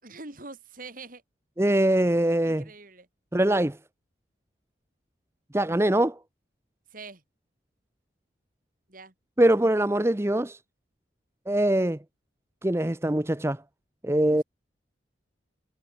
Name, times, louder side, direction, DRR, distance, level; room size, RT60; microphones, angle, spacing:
voice 1, 0.0-1.2 2.4-3.1 6.9-7.2 8.9-9.1 14.3-14.4, right 3 dB, 45° right, 3.1 m, -44 dB
voice 2, 1.6-2.6 3.3-3.8 5.5-6.2 9.4-10.6 11.5-12.0 12.6-13.6 14.0-14.4, right 1 dB, 15° right, 0.7 m, -23 dB
head